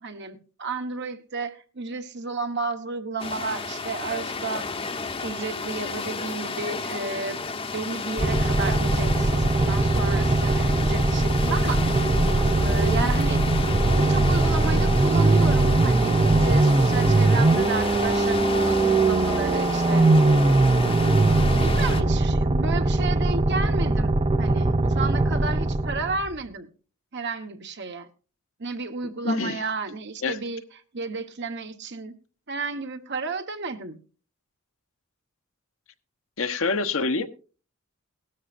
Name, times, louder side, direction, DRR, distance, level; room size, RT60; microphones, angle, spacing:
voice 1, 0.0-4.7 5.2-7.4 7.7-11.9 12.6-13.4 13.9-20.1 21.5-26.7 27.1-28.1 28.6-30.6 30.9-32.1 32.5-34.0, right 3 dB, 55° right, 1.3 m, -32 dB
sound 1, 3.2-22.0, left 4 dB, 25° left, 1.0 m, -32 dB
sound 2, 8.2-26.2, right 2 dB, 25° right, 0.7 m, -21 dB
sound 3, 8.2-26.5, equal, 85° right, 3.9 m, -40 dB
voice 2, 29.2-29.6 30.2-30.4 36.4-37.3, left 3 dB, 65° left, 1.1 m, -26 dB
17.5 x 13.0 x 2.6 m
head